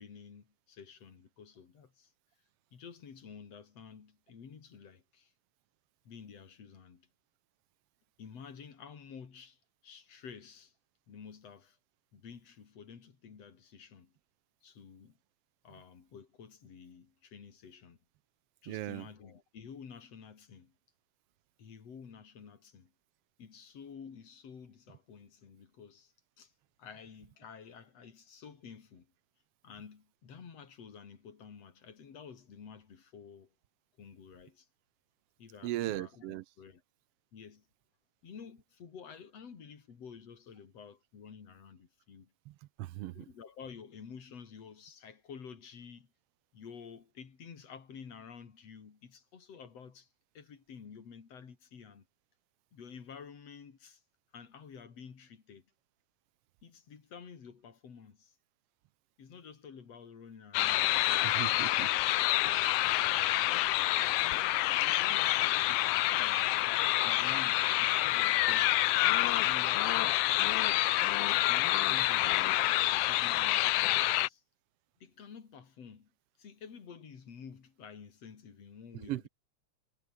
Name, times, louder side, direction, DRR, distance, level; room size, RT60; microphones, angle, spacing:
voice 1, 0.0-2.1 2.7-5.3 6.1-7.1 8.2-10.7 11.1-11.8 12.1-14.1 14.6-15.1 15.6-18.0 18.6-20.7 21.6-22.9 23.4-26.5 26.8-29.1 29.6-33.5 34.0-34.7 35.4-36.8 37.3-37.6 38.2-42.3 43.1-46.1 46.5-50.1 50.3-52.1 52.7-54.0 54.3-55.7 56.6-58.3 59.2-61.7 62.4-63.4 64.2-64.5 64.8-66.5 67.0-68.9 69.4-70.2 71.5-74.4 75.0-76.1 76.4-79.3, left 6 dB, 60° left, 4.0 m, -51 dB
voice 2, 18.7-19.1 35.6-36.4 42.5-43.3 61.2-61.9 79.1-79.3, right 16 dB, 75° right, 1.4 m, -38 dB
sound 1, 60.5-74.3, left 16 dB, 75° left, 1.5 m, -27 dB
omnidirectional pair, 3.3 m